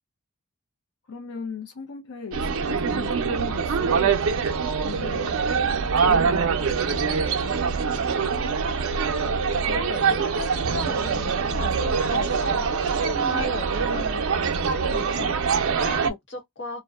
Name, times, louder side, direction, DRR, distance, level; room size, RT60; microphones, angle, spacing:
voice 1, 1.1-4.3 4.8-7.9, left 5 dB, 85° left, 0.6 m, -39 dB
sound 1, 2.3-16.1, right 5 dB, 65° right, 0.4 m, -24 dB
voice 2, 9.7-16.8, left 3 dB, 55° left, 1.0 m, -36 dB
2.5 x 2.1 x 2.3 m
head